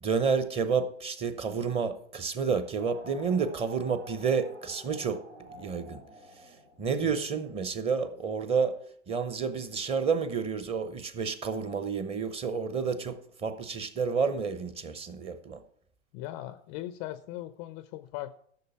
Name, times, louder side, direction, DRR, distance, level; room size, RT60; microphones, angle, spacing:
voice 1, 0.0-5.2 5.5-6.0 6.8-8.7 9.1-15.6, right 5 dB, 15° right, 0.8 m, -30 dB
sound 1, 2.8-7.3, equal, 85° right, 3.9 m, -49 dB
voice 2, 16.1-18.3, left 14 dB, 25° left, 0.4 m, -39 dB
13.5 x 6.4 x 5.7 m
hypercardioid pair, 110°, 35 cm